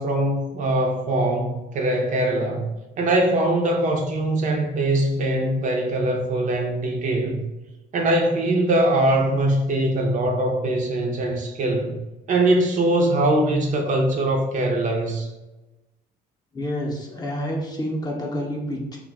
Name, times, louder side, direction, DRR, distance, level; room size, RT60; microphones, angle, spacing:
voice 1, 0.0-2.7 3.0-7.4 7.9-12.0 12.3-15.3, right 1 dB, 50° right, 2 dB, 0.5 m, -22 dB
voice 2, 16.5-19.0, equal, 25° left, -1 dB, 0.6 m, -28 dB
2.4 x 2.1 x 3.4 m, 1.1 s
cardioid pair, 110°, 17 cm